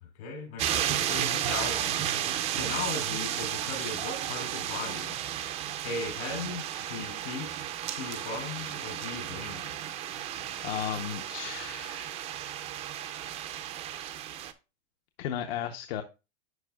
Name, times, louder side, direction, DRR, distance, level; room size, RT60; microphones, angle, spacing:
voice 1, 0.0-2.0 2.5-5.2 5.8-10.0 15.6-15.7, left 4 dB, 75° left, 3.4 m, -38 dB
sound 1, 0.6-14.5, right 11 dB, 20° right, 0.4 m, -33 dB
voice 2, 10.6-12.2 15.2-16.0, left 10 dB, 60° left, 0.7 m, -35 dB
11.0 x 4.4 x 2.2 m
supercardioid pair, 140°, 33 cm